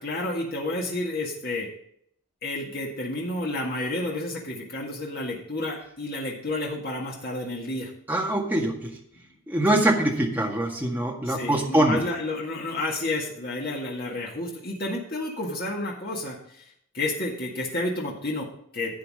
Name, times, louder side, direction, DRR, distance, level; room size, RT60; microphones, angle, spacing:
voice 1, 0.0-1.7 2.4-7.9 9.7-9.8 11.3-19.0, left 2 dB, 45° left, -2 dB, 1.9 m, -31 dB
voice 2, 8.1-8.9 9.5-12.0, right 1 dB, 10° right, -1 dB, 1.7 m, -23 dB
11.5 x 8.5 x 3.6 m, 0.68 s
head